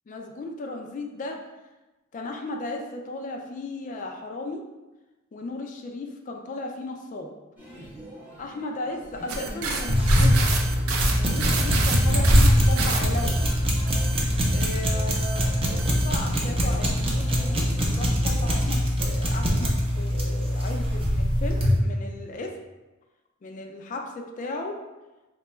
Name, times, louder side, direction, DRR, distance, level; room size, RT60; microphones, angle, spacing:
voice 1, 0.1-1.4 2.1-4.6 5.3-7.3 8.4-10.5 11.2-13.4 14.5-17.6 17.9-22.5 23.4-24.7, left 2 dB, 35° left, 2 dB, 0.3 m, -35 dB
sound 1, 7.6-18.6, equal, 10° right, 0.9 m, -44 dB
sound 2, 9.3-13.5 13.9-14.8 15.1-15.5 15.8-16.1, right 4 dB, 75° right, 0.5 m, -30 dB
sound 3, 9.9-21.8, equal, 25° right, 0.5 m, -22 dB
2.9 x 2.2 x 4.2 m, 1.1 s
head